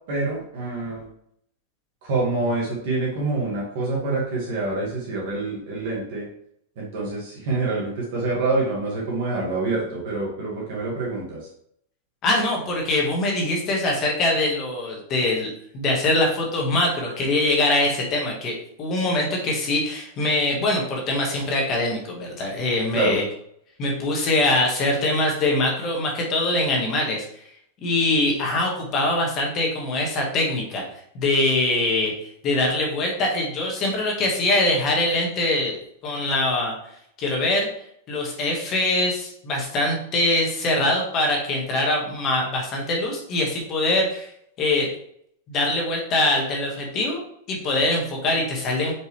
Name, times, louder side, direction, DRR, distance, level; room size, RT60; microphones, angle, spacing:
voice 1, 0.1-1.1 2.0-6.3 6.8-11.5 22.9-23.2, right 3 dB, 45° right, -3 dB, 1.8 m, -26 dB
voice 2, 12.2-18.5 18.8-23.2 23.8-27.2 27.8-30.8 31.1-32.1 32.4-35.8 36.0-36.7 37.2-37.7 38.1-44.3 44.6-44.9 45.5-47.2 47.5-48.9, left 2 dB, 20° left, -1 dB, 1.4 m, -23 dB
6.4 x 4.8 x 3.2 m, 0.69 s
supercardioid pair, 175°, 0 cm